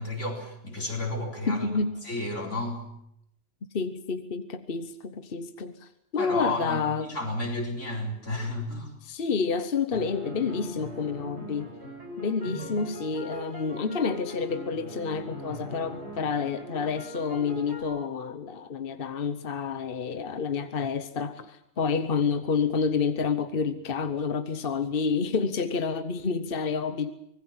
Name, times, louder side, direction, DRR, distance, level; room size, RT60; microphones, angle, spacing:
voice 1, 0.0-1.7 2.0-2.9 6.2-8.9 12.4-12.7, left 2 dB, 90° left, 4.6 m, -32 dB
voice 2, 1.5-2.0 3.7-7.1 9.0-11.7 12.2-27.1, left 5 dB, 55° left, 1.2 m, -29 dB
sound 1, 9.9-17.8, equal, 65° right, 5.4 m, -41 dB
24.5 x 20.5 x 7.3 m
omnidirectional pair, 1.2 m